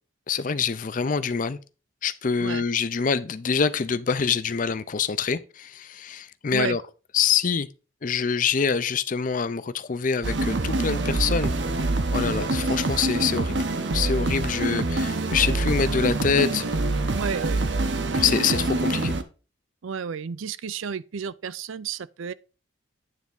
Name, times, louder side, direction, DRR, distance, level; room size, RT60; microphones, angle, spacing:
voice 1, 0.3-1.6 2.0-6.8 7.1-7.7 8.0-13.6 13.9-16.6 18.1-19.1, left 6 dB, 40° left, 0.5 m, -25 dB
sound 1, 10.2-19.2, right 2 dB, 60° right, 0.8 m, -25 dB
voice 2, 17.1-17.9 19.8-22.3, right 6 dB, 80° right, 0.4 m, -32 dB
9.4 x 3.5 x 5.3 m
head